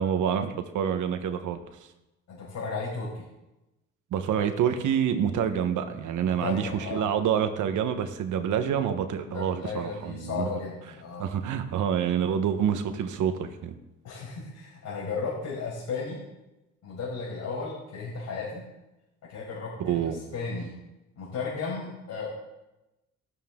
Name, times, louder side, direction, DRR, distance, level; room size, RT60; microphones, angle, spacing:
voice 1, 0.0-1.6 4.1-10.5 11.2-13.8 19.8-20.2, right 8 dB, 75° right, 8 dB, 1.3 m, -27 dB
voice 2, 2.3-3.2 6.4-7.1 9.2-11.3 14.0-16.2 16.8-18.6 19.3-20.7 21.2-22.3, left 4 dB, 70° left, -7 dB, 5.7 m, -34 dB
13.0 x 13.0 x 3.8 m, 0.98 s
cardioid pair, 90°, 30 cm